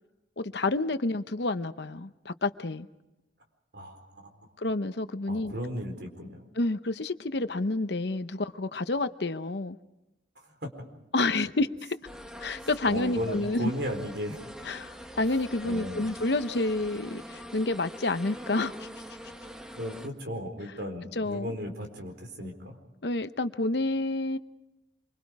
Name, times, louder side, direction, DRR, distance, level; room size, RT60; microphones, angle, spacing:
voice 1, 0.4-2.9 4.6-5.5 6.5-9.8 11.1-12.0 12.4-13.7 14.7-18.9 21.2-21.5 23.0-24.4, left 2 dB, 60° left, 0.9 m, -29 dB
voice 2, 3.7-4.3 5.3-6.4 10.4-10.7 12.8-14.4 15.6-16.0 19.7-22.8, equal, 60° right, 4.3 m, -35 dB
sound 1, 12.1-20.1, equal, 5° right, 1.2 m, -44 dB
26.5 x 24.5 x 4.8 m
head